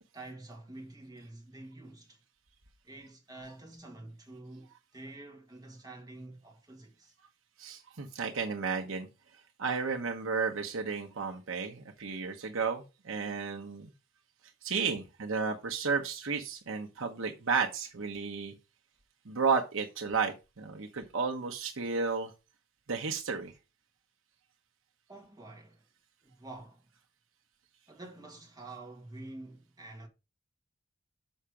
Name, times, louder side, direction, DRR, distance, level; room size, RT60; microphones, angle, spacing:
voice 1, 0.1-2.2 2.8-7.1 25.1-25.8 26.2-26.8 27.9-30.1, right 2 dB, 20° right, 1.9 m, -48 dB
voice 2, 7.6-9.1 9.6-13.9 14.6-18.5 19.2-22.3 22.9-23.5, right 5 dB, 90° right, 1.0 m, -33 dB
6.5 x 5.7 x 4.9 m
head